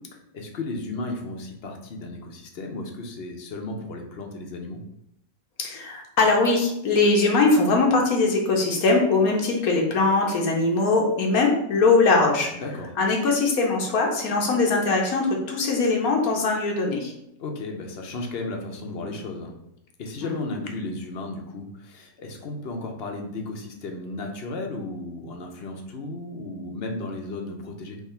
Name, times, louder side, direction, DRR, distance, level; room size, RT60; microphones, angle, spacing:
voice 1, 0.3-4.8 12.6-12.9 17.4-19.5 20.0-28.0, left 2 dB, 55° left, 3 dB, 0.8 m, -34 dB
voice 2, 5.6-12.5 13.0-17.1 20.2-20.6, left 3 dB, 85° left, 0 dB, 1.3 m, -21 dB
3.6 x 3.2 x 4.3 m, 0.79 s
omnidirectional pair, 1.5 m